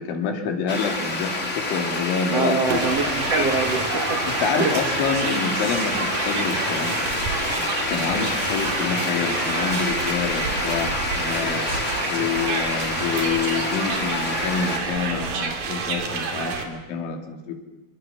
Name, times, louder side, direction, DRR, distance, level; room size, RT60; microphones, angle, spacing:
voice 1, 0.0-2.8 4.3-7.0 7.6-11.7 12.1-17.6, left 6 dB, 70° left, 5 dB, 4.8 m, -27 dB
sound 1, 0.7-14.8, left 2 dB, 25° left, 1.8 m, -27 dB
voice 2, 2.3-4.8, right 3 dB, 80° right, 5 dB, 1.4 m, -24 dB
sound 2, 2.7-16.6, right 5 dB, 50° right, 3.5 m, -29 dB
27.5 x 24.5 x 6.9 m, 1.1 s
omnidirectional pair, 5.7 m